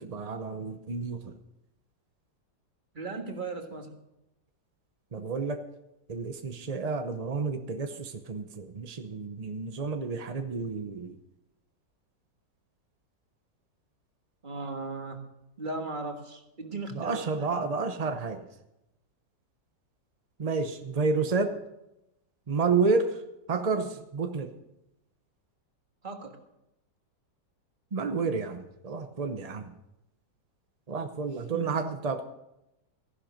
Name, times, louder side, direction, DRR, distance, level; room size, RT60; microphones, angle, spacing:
voice 1, 0.0-1.4 5.1-5.7 6.1-11.2 16.9-18.4 20.4-21.6 22.5-23.2 23.5-24.5 27.9-29.7 30.9-32.2, right 4 dB, 50° right, 7 dB, 0.4 m, -30 dB
voice 2, 2.9-4.0 14.4-15.2 15.6-17.5 26.0-26.4 31.5-31.8, right 3 dB, 30° right, 5 dB, 1.6 m, -37 dB
15.0 x 11.5 x 5.1 m, 0.88 s
omnidirectional pair, 2.0 m